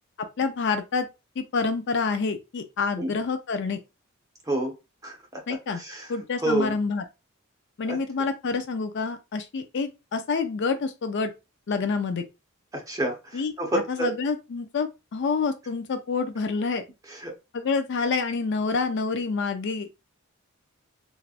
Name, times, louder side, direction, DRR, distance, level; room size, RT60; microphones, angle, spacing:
voice 1, 0.4-1.1 1.4-3.8 5.5-5.8 6.1-7.0 7.8-11.3 11.7-12.2 13.3-13.5 13.9-16.8 17.5-19.9, left 4 dB, 55° left, 0.4 m, -27 dB
voice 2, 5.0-5.4 5.8-6.1 6.4-6.7 7.9-8.0 12.7-14.1 17.1-17.3, right 1 dB, 15° right, 0.9 m, -29 dB
3.3 x 2.4 x 2.4 m
head